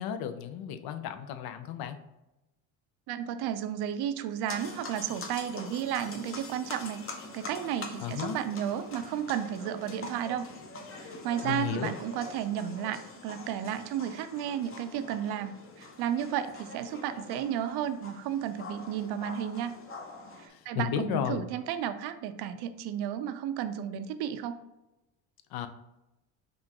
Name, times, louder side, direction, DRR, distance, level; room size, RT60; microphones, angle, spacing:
voice 1, 0.0-2.0 8.0-8.4 11.4-11.9 20.5-21.5 25.5-25.7, left 9 dB, 60° left, 9 dB, 0.5 m, -33 dB
voice 2, 3.1-10.5 11.0-19.8 20.4-24.6, right 9 dB, 65° right, 11 dB, 0.5 m, -33 dB
sound 1, 4.5-20.5, left 3 dB, 30° left, 0.8 m, -44 dB
5.2 x 2.4 x 2.9 m, 0.98 s
supercardioid pair, 80°, 42 cm